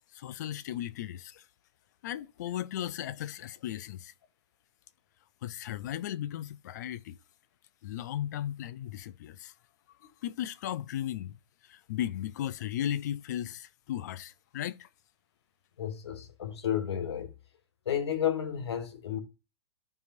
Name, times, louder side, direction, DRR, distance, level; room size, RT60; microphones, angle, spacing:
voice 1, 0.1-1.5 2.0-4.1 5.4-7.2 7.8-9.5 10.0-11.4 11.6-14.9, left 11 dB, 40° left, 0.5 m, -36 dB
voice 2, 15.8-17.3 17.8-19.2, left 9 dB, 70° left, 1.7 m, -32 dB
13.5 x 4.8 x 2.6 m
hypercardioid pair, 165°, 14 cm